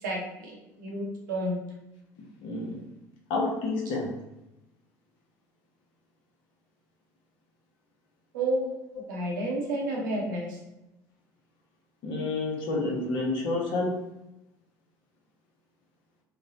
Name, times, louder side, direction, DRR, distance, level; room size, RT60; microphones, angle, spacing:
voice 1, 0.0-1.6 8.3-8.8 9.1-10.6, right 1 dB, 80° right, -2 dB, 0.8 m, -30 dB
voice 2, 2.4-2.8 3.3-4.2 12.0-14.1, left 2 dB, 60° left, -2 dB, 0.9 m, -29 dB
3.0 x 2.2 x 2.7 m, 0.91 s
hypercardioid pair, 65°, 10 cm